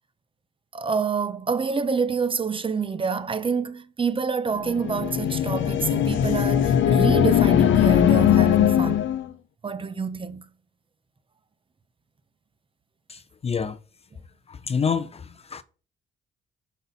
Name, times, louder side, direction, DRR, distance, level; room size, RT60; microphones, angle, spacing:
voice 1, 0.7-9.1 9.6-10.4, right 5 dB, 25° right, 0.6 m, -27 dB
sound 1, 4.6-9.3, left 10 dB, 70° left, 0.7 m, -20 dB
voice 2, 13.1-13.8 14.5-15.6, left 6 dB, 30° left, 0.5 m, -28 dB
5.9 x 4.1 x 5.5 m
cardioid pair, 90°, 20 cm